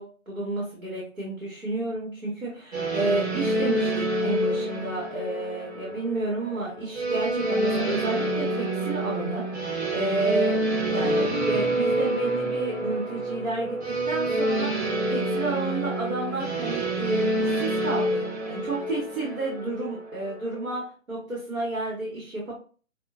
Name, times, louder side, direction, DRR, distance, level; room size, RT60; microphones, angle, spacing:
voice 1, 0.0-10.6 10.9-13.8 14.1-14.7 15.1-22.5, right 2 dB, 70° right, -3 dB, 1.9 m, -31 dB
sound 1, 2.7-20.8, right 1 dB, 55° right, 1.3 m, -27 dB
6.0 x 2.4 x 2.6 m, 0.39 s
figure-of-eight pair, 135°, 41 cm